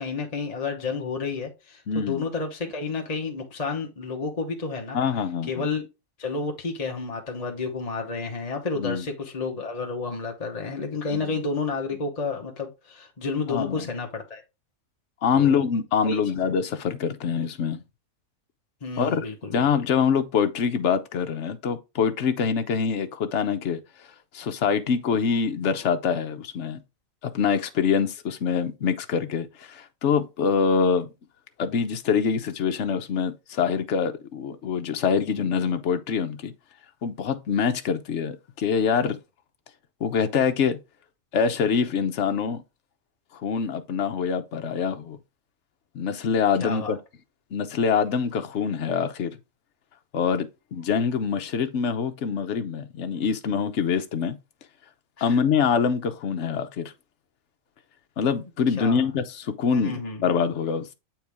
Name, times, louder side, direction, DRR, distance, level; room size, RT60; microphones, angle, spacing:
voice 1, 0.0-5.0 5.4-5.8 6.2-14.4 15.3-15.6 16.0-16.2 16.4-16.5 18.8-19.6 46.6-47.0 55.2-55.4 58.7-59.0 59.7-60.2, left 4 dB, 30° left, 1.1 m, -31 dB
voice 2, 1.9-2.3 4.9-5.7 8.7-9.1 11.1-11.4 13.5-13.9 15.2-17.8 19.0-19.3 19.5-23.8 24.3-26.8 27.2-31.1 31.6-36.5 37.0-39.2 40.0-40.8 41.3-42.6 43.3-45.2 45.9-47.0 47.5-49.4 50.1-54.4 55.2-56.9 58.2-60.9, left 6 dB, 60° left, 1.1 m, -25 dB
8.1 x 4.5 x 3.5 m
omnidirectional pair, 1.5 m